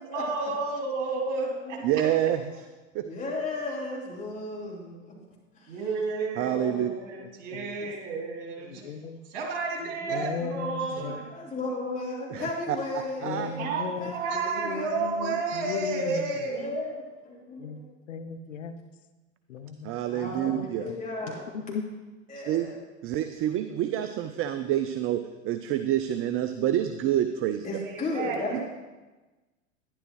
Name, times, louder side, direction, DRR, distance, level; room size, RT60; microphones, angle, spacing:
voice 1, 0.1-1.8 5.7-6.5 6.8-8.9 9.3-11.2 13.6-16.7 27.8-28.6, right 4 dB, 65° right, -2 dB, 3.4 m, -31 dB
voice 2, 1.8-2.6 2.9-3.0 6.4-6.9 12.3-12.8 13.2-13.5 19.8-20.9 22.5-22.7 23.0-27.7 28.5-28.6, right 11 dB, 35° right, 10 dB, 0.5 m, -27 dB
voice 3, 3.0-5.2 5.6-5.8 6.4-6.9 7.8-7.9 9.8-10.4 10.9-13.7 14.0-15.1 16.4-17.9 20.1-21.5 22.3-22.7 27.6-28.6, left 2 dB, 20° left, -5 dB, 4.0 m, -35 dB
voice 4, 7.2-7.7 8.7-9.2 10.1-11.2 13.2-16.2 17.6-17.8 18.1-18.7 19.5-19.9 20.2-21.0 21.7-21.8, left 6 dB, 85° left, 10 dB, 0.8 m, -36 dB
12.0 x 11.0 x 3.2 m, 1.2 s
hypercardioid pair, 95°, 37 cm